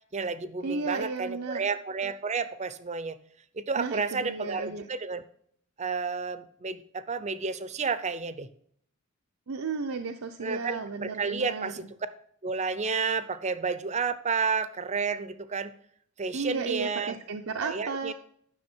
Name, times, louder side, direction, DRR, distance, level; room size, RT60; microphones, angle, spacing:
voice 1, 0.1-3.2 3.5-5.2 5.8-8.5 10.4-11.9 12.4-15.7 16.2-17.2 17.6-18.1, right 5 dB, 30° right, 14 dB, 0.6 m, -31 dB
voice 2, 0.6-1.7 3.8-4.9 9.5-11.9 16.3-18.1, right 4 dB, 80° right, 4 dB, 0.7 m, -34 dB
10.5 x 6.3 x 4.4 m, 0.65 s
head